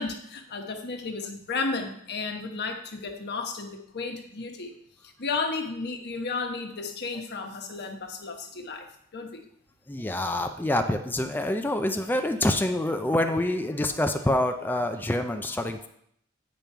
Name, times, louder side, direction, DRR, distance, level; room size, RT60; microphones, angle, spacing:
voice 1, 0.0-4.8 5.2-8.9 9.1-9.4, left 4 dB, 50° left, 4 dB, 1.1 m, -33 dB
voice 2, 9.9-15.9, left 1 dB, 10° left, 6 dB, 0.5 m, -26 dB
9.0 x 5.3 x 4.5 m, 0.70 s
head